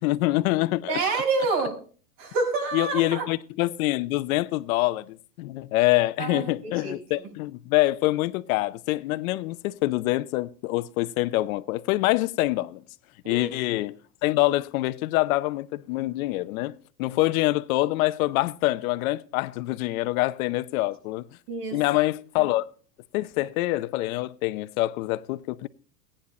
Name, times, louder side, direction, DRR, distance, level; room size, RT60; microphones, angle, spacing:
voice 1, 0.0-1.2 2.7-12.8 13.2-14.0 14.2-16.7 17.0-21.2 21.7-22.6 23.1-25.7, left 18 dB, 60° left, 0.8 m, -25 dB
voice 2, 0.9-1.8 2.2-3.3 6.2-6.9 7.2-7.3 13.2-13.5 21.5-21.8, right 4 dB, 70° right, 6.0 m, -28 dB
15.5 x 10.0 x 4.2 m
supercardioid pair, 130°, 48 cm